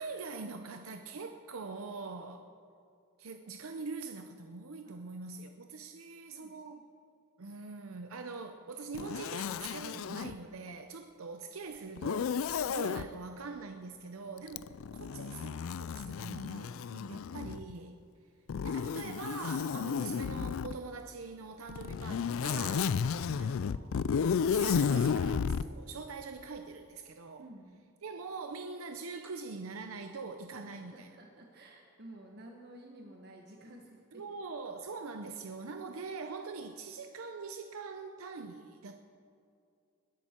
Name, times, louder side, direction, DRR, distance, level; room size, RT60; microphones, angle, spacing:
voice 1, 0.0-2.5 3.2-6.8 7.4-16.8 17.1-18.0 18.6-23.0 23.4-24.2 24.5-27.5 28.0-31.1 34.1-38.9, right 4 dB, 75° right, 6 dB, 0.7 m, -43 dB
voice 2, 5.8-6.9 16.9-17.1 27.4-27.8 30.6-34.2, right 1 dB, 50° right, 1 dB, 1.2 m, -53 dB
Zipper (clothing), 8.9-10.4 12.0-13.1 14.5-17.7 18.5-20.8 21.7-25.7, left 6 dB, 70° left, 0.4 m, -32 dB
20.5 x 11.0 x 4.4 m, 2.4 s
head